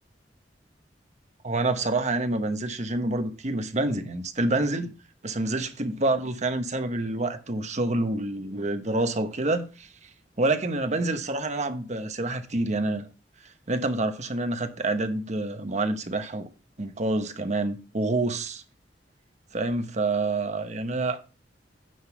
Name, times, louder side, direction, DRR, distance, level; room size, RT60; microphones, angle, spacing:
voice 1, 1.4-5.0 5.2-9.9 10.4-13.1 13.7-16.5 16.8-18.6 19.5-21.2, right 2 dB, 40° right, 1.0 m, -27 dB
9.4 x 3.9 x 5.9 m
head